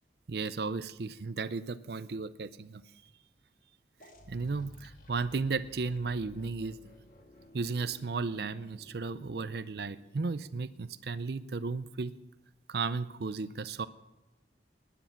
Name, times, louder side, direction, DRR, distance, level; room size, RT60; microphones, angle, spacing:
voice 1, 0.3-2.8 4.3-6.8 7.5-12.1 12.7-13.9, right 4 dB, 60° right, 14 dB, 0.5 m, -34 dB
sound 1, 4.0-10.6, left 1 dB, 50° left, 1.9 m, -55 dB
19.0 x 10.5 x 5.8 m, 1.1 s
head